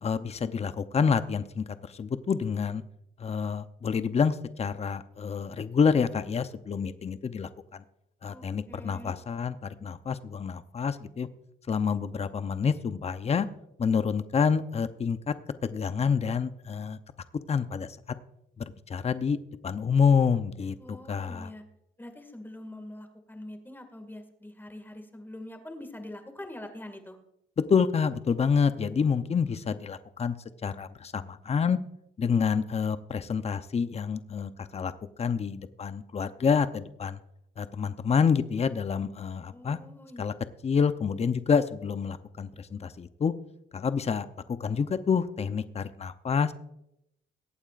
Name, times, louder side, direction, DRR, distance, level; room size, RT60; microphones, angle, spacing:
voice 1, 0.0-2.8 3.2-7.8 8.2-11.3 11.7-13.5 13.8-15.3 15.6-17.0 17.5-17.9 18.6-19.4 19.6-21.5 27.6-30.4 30.6-31.8 32.2-34.9 35.2-37.2 37.6-39.8 40.2-40.3 40.6-43.3 43.7-44.3 44.6-46.5, left 6 dB, 30° left, 11 dB, 0.7 m, -28 dB
voice 2, 8.3-9.1 20.8-21.6 22.0-27.2 39.5-40.3, left 1 dB, 10° left, 6 dB, 2.1 m, -44 dB
22.0 x 8.7 x 2.5 m, 0.81 s
cardioid pair, 90°, 20 cm